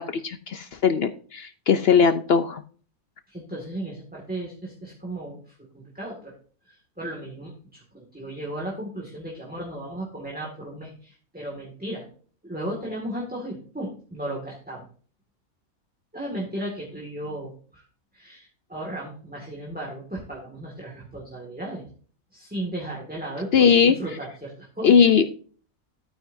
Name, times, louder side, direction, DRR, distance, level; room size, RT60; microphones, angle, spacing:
voice 1, 0.0-2.6 23.5-24.0 24.8-25.3, left 6 dB, 60° left, 10 dB, 0.7 m, -19 dB
voice 2, 3.3-6.4 6.6-12.1 12.4-14.8 16.1-17.8 18.1-21.8 22.3-25.0, right 1 dB, 5° right, -3 dB, 1.9 m, -35 dB
12.0 x 9.2 x 2.6 m, 0.43 s
omnidirectional pair, 1.5 m